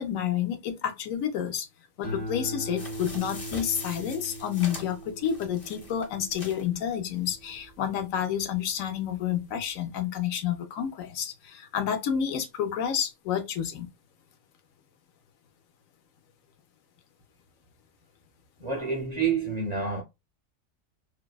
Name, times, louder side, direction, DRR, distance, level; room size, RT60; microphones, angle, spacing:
voice 1, 0.0-1.7 2.0-13.9, left 9 dB, 85° left, 1.0 m, -30 dB
sound 1, 2.0-8.6 9.0-9.5, right 1 dB, 55° left, 1.0 m, -40 dB
sound 2, 2.8-6.7 7.2-7.3 7.5-7.6, left 2 dB, 35° left, 0.6 m, -43 dB
voice 2, 18.6-20.0, right 5 dB, 50° right, 0.5 m, -28 dB
2.6 x 2.3 x 2.2 m
omnidirectional pair, 1.4 m